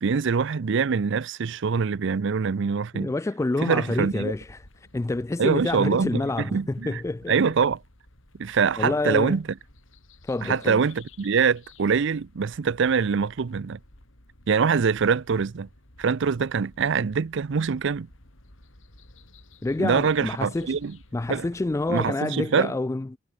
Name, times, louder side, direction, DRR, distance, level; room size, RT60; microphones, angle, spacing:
voice 1, 0.0-3.1 3.6-4.3 5.4-7.0 7.3-7.8 8.4-9.4 10.4-13.8 14.5-15.7 16.0-18.1 19.8-21.0 21.3-21.5 21.9-22.7, right 5 dB, 65° right, 0.5 m, -24 dB
voice 2, 2.9-4.6 4.9-7.3 8.8-9.4 10.3-10.8 19.6-20.8 21.1-23.2, left 2 dB, 15° left, 0.3 m, -28 dB
sound 1, 3.9-22.1, left 2 dB, 80° left, 4.7 m, -53 dB
head